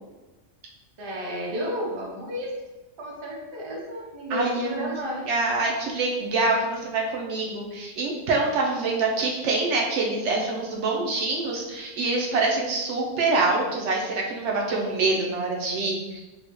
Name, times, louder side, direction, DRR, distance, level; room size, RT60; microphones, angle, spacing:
voice 1, 1.0-2.5 3.0-5.3, equal, 35° right, -3 dB, 0.4 m, -32 dB
voice 2, 4.3-5.0 5.3-16.2, right 3 dB, 70° right, -1 dB, 0.9 m, -25 dB
3.3 x 2.2 x 2.9 m, 1.1 s
omnidirectional pair, 1.3 m